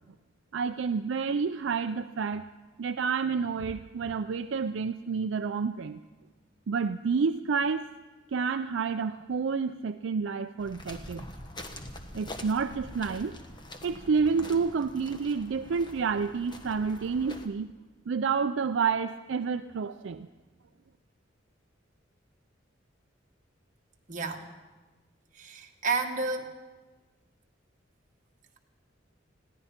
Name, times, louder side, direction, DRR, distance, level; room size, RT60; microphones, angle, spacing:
voice 1, 0.5-2.5 2.8-6.0 6.7-7.9 8.3-11.2 12.1-13.3 13.8-17.7 18.1-20.3, right 5 dB, 70° right, 9 dB, 0.4 m, -29 dB
sound 1, 10.6-17.5, left 1 dB, 25° left, 1.2 m, -45 dB
voice 2, 24.1-24.4 25.3-26.5, right 4 dB, 45° right, 2 dB, 1.6 m, -31 dB
21.0 x 15.5 x 4.4 m, 1.2 s
head